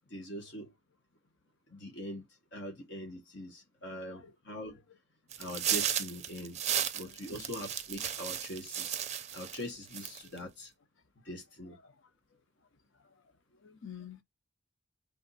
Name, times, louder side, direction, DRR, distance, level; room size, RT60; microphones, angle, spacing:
voice 1, 0.1-0.7 1.7-2.2 2.5-4.8 5.4-9.0 9.3-10.7 11.2-11.8, left 1 dB, 65° left, 1.1 m, -43 dB
voice 2, 3.9-4.3 7.0-7.4 10.2-10.3 11.8-11.9 13.0-13.1 13.6-14.2, left 8 dB, 85° left, 0.7 m, -50 dB
sound 1, 5.3-9.6 9.9-10.4, right 9 dB, 35° right, 0.5 m, -34 dB
3.4 x 2.6 x 4.0 m
head